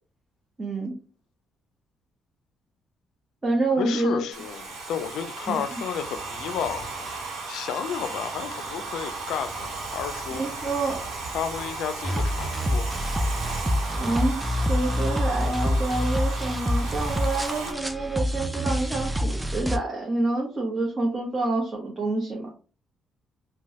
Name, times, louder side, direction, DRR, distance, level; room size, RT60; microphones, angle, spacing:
voice 1, 0.6-1.0 3.4-4.2 5.5-5.8 10.3-11.0 14.0-22.5, right 2 dB, 30° right, 0.9 m, -28 dB
voice 2, 3.8-7.1 7.5-10.4 11.3-12.9, left 8 dB, 85° left, 0.3 m, -32 dB
Domestic sounds home sounds, 4.3-17.7, right 3 dB, 85° right, 1.0 m, -35 dB
sound 1, 12.0-19.8, equal, 10° right, 0.4 m, -27 dB
3.0 x 2.2 x 2.8 m
cardioid pair, 90°, 0 cm